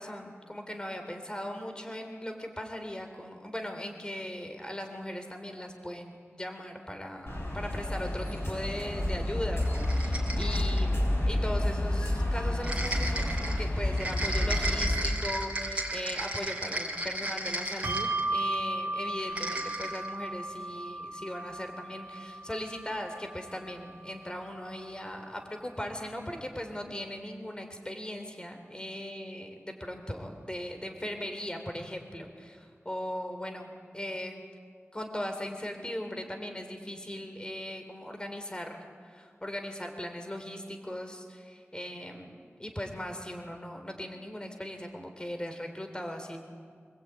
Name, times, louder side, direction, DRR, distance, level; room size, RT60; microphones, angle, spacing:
voice 1, 0.0-34.4 34.9-46.4, left 1 dB, 20° left, 5 dB, 3.6 m, -39 dB
sound 1, 7.3-15.0, left 1 dB, 65° left, 7.5 m, -29 dB
sound 2, 9.6-10.9 12.6-18.5 19.2-20.1, right 1 dB, 30° right, 4.2 m, -35 dB
Bell, 17.8-24.7, right 2 dB, 75° right, 2.6 m, -36 dB
26.5 x 20.5 x 9.2 m, 2.1 s
wide cardioid pair, 60°, 5 cm